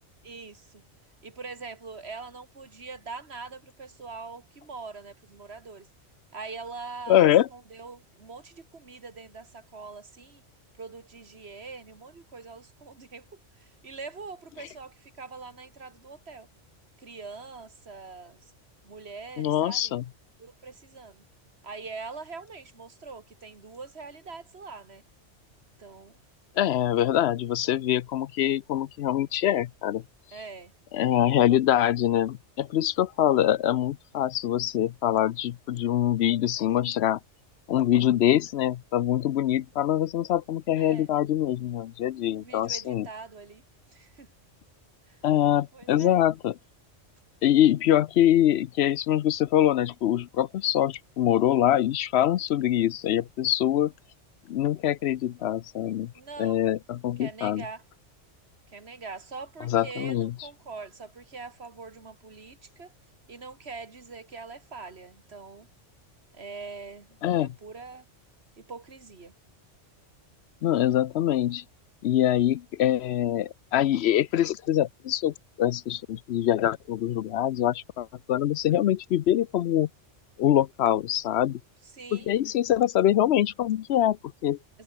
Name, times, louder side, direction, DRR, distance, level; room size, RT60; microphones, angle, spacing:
voice 1, 0.2-0.8 1.2-5.9 6.3-10.4 10.7-16.5 17.0-18.4 18.8-20.0 20.4-21.2 21.6-25.0 25.8-26.2 27.7-27.8 30.3-30.7 40.8-41.1 42.3-43.6 43.9-44.3 45.1-45.2 45.7-46.2 56.1-56.6 57.2-57.8 58.7-62.9 63.3-65.7 66.3-68.0 68.6-69.3 81.9-82.3, right 4 dB, 60° right, 2.6 m, -43 dB
voice 2, 7.1-7.5 19.4-20.0 26.6-30.0 30.9-37.2 37.7-43.1 45.2-46.5 47.4-53.9 54.5-56.1 56.4-57.6 59.6-60.3 67.2-67.5 70.6-71.6 72.0-79.9 80.4-81.6 82.1-84.2 84.4-84.6, left 11 dB, 65° left, 0.8 m, -24 dB
omnidirectional pair, 1.3 m